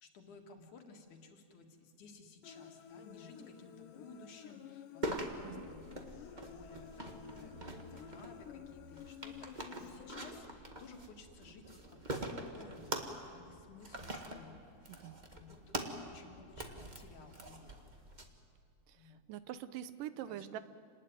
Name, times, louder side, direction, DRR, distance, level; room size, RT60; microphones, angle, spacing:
voice 1, 0.0-13.0 13.3-14.8 15.3-18.1 19.0-19.2 20.3-20.6, left 4 dB, 65° left, 3 dB, 3.4 m, -57 dB
Human voice, 2.4-10.4, left 8 dB, 85° left, 2.6 m, -52 dB
sound 1, 5.0-18.2, right 1 dB, 25° right, 1.1 m, -44 dB
voice 2, 18.9-20.6, right 11 dB, 90° right, 13 dB, 2.5 m, -44 dB
28.0 x 19.5 x 9.5 m, 2.3 s
omnidirectional pair, 3.7 m